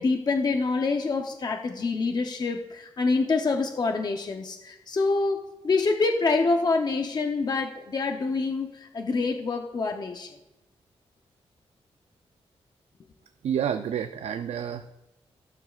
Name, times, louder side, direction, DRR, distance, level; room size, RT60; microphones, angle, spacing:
voice 1, 0.0-10.3, left 3 dB, 40° left, 4 dB, 0.7 m, -26 dB
voice 2, 13.4-14.9, right 8 dB, 85° right, 8 dB, 0.5 m, -29 dB
16.0 x 12.0 x 2.4 m, 0.99 s
wide cardioid pair, 125°, 11 cm